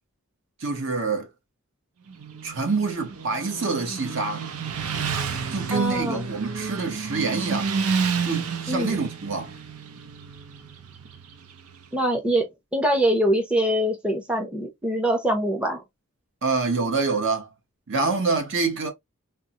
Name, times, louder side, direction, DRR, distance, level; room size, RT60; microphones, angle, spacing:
voice 1, 0.6-1.3 2.4-4.4 5.5-7.7 8.2-9.6 16.4-17.5 17.9-18.9, right 4 dB, 60° right, 0.9 m, -26 dB
Motorcycle, 2.1-11.9, right 5 dB, 80° right, 0.5 m, -31 dB
voice 2, 5.7-6.3 8.7-9.0 11.9-15.8, right 1 dB, 5° right, 0.6 m, -24 dB
3.6 x 2.0 x 2.7 m
head